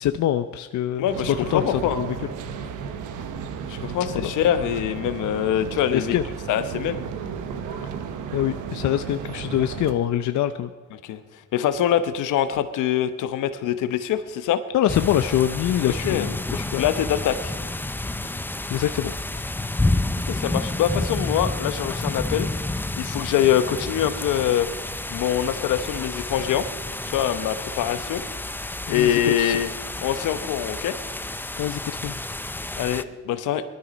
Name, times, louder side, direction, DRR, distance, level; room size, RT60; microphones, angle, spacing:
voice 1, 0.0-1.1 1.5-2.1 4.1-4.3 5.9-6.2 8.3-10.7 14.7-16.8 18.2-19.1 28.9-29.6 31.6-32.2, left 11 dB, 70° left, 10 dB, 0.6 m, -25 dB
voice 2, 1.0-2.0 3.7-6.2 6.5-7.0 10.9-11.2 11.5-14.6 16.0-16.3 16.7-17.5 20.3-24.7 25.1-26.7 27.1-28.2 28.9-29.7 30.0-30.9 32.8-33.6, left 10 dB, 90° left, 11 dB, 1.0 m, -24 dB
sound 1, 1.1-9.9, right 6 dB, 85° right, 1.1 m, -34 dB
sound 2, 14.9-33.0, left 2 dB, 5° left, 0.5 m, -30 dB
20.0 x 13.0 x 5.2 m, 1.4 s
cardioid pair, 90°, 30 cm